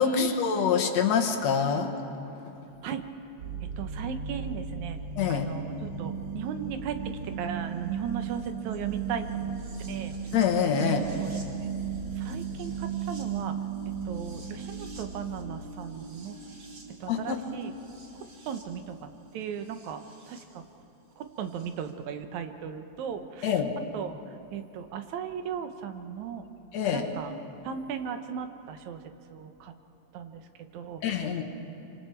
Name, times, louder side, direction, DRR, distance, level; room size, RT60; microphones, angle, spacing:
voice 1, 0.0-1.9 2.3-2.4 5.2-5.5 10.3-11.1 17.1-17.4 23.4-23.7 26.7-27.1 31.0-31.4, left 7 dB, 70° left, 4 dB, 2.4 m, -25 dB
sound 1, 3.4-20.4 21.6-21.7, right 6 dB, 45° right, 2.5 m, -36 dB
voice 2, 3.8-5.0 5.3-9.5 9.9-10.1 11.2-11.3 11.6-11.7 12.2-13.6 14.1-16.4 17.0-17.7 18.5-20.0 20.3-20.6 21.2-23.5 23.9-24.2 24.5-26.4 26.9-27.3 27.6-29.0 29.3-29.7 30.1-30.4 30.7-31.3, right 7 dB, 80° right, 8 dB, 2.3 m, -37 dB
25.5 x 25.5 x 4.5 m, 2.9 s
omnidirectional pair, 3.3 m